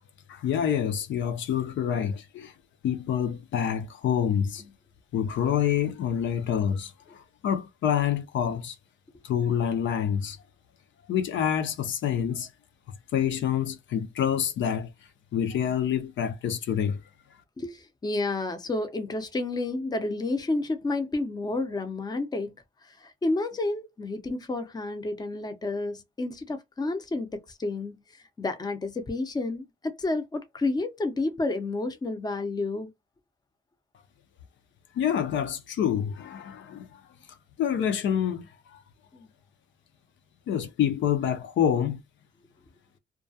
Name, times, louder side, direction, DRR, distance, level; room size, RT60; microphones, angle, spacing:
voice 1, 0.3-2.5 2.8-4.6 5.1-8.7 9.2-10.4 11.1-12.5 13.1-14.9 15.3-17.0 35.0-36.9 37.6-38.8 40.5-42.0, left 9 dB, 70° left, 0.6 m, -27 dB
voice 2, 17.6-22.5 22.8-28.0 28.4-32.9 39.1-39.3, left 2 dB, 20° left, 0.6 m, -30 dB
2.3 x 2.2 x 2.6 m
cardioid pair, 90°, 20 cm